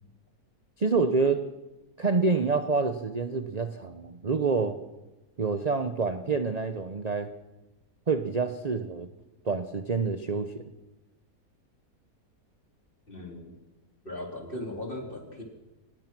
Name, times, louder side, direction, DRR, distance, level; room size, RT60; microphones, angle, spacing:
voice 1, 0.8-1.4 2.0-4.8 5.4-7.3 8.1-9.1 9.4-10.6, right 4 dB, 30° right, 8 dB, 0.9 m, -27 dB
voice 2, 13.1-13.6 14.0-15.4, left 1 dB, 35° left, 1 dB, 4.0 m, -38 dB
23.5 x 20.0 x 6.1 m, 1.0 s
omnidirectional pair, 1.6 m